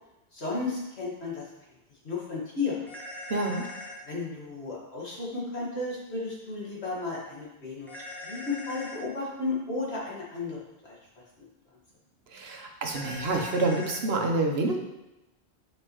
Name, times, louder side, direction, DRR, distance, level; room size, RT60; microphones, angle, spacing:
voice 1, 0.3-1.5 2.0-2.9 4.1-7.9 8.2-10.9, left 3 dB, 80° left, -4 dB, 2.1 m, -33 dB
sound 1, 2.9-4.0 7.9-9.0 12.9-14.0, left 2 dB, ahead, 1.0 m, -41 dB
voice 2, 3.3-3.7 12.3-14.8, right 2 dB, 70° right, 2 dB, 1.2 m, -27 dB
8.4 x 5.3 x 3.0 m, 0.96 s
omnidirectional pair, 1.1 m